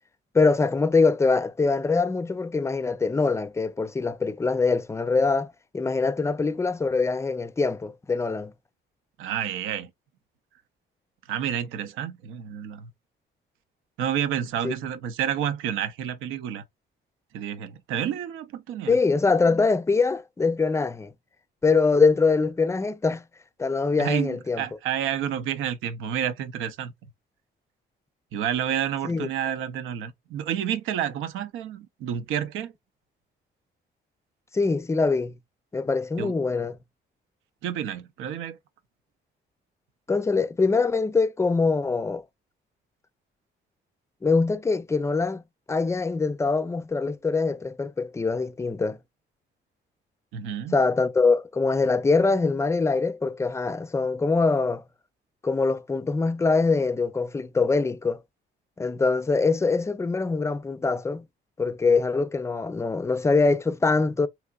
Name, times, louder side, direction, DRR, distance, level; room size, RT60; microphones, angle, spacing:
voice 1, 0.3-8.5 14.6-14.7 18.9-21.1 21.6-23.2 23.6-24.6 29.0-29.3 34.5-35.3 35.7-36.8 40.1-42.2 44.2-45.4 45.7-49.0 50.7-54.8 55.4-58.2 58.8-61.2 61.6-64.3, left 4 dB, 15° left, 0.3 m, -23 dB
voice 2, 9.2-9.9 11.3-12.9 14.0-16.6 17.3-19.0 24.0-26.9 28.3-32.7 36.2-36.3 37.6-38.6 50.3-50.8, right 9 dB, 90° right, 0.6 m, -29 dB
3.4 x 2.9 x 2.3 m
cardioid pair, 90°, 20 cm